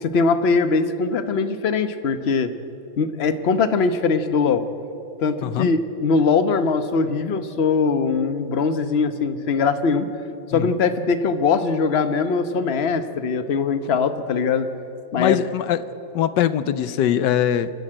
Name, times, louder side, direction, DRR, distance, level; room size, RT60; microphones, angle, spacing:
voice 1, 0.0-2.5 3.0-4.6 5.2-10.1 10.5-14.7 15.1-15.4, left 4 dB, 45° left, 10 dB, 0.9 m, -21 dB
voice 2, 15.2-15.8 16.1-17.7, left 10 dB, 75° left, 14 dB, 1.3 m, -21 dB
26.5 x 12.0 x 8.9 m, 2.9 s
omnidirectional pair, 2.0 m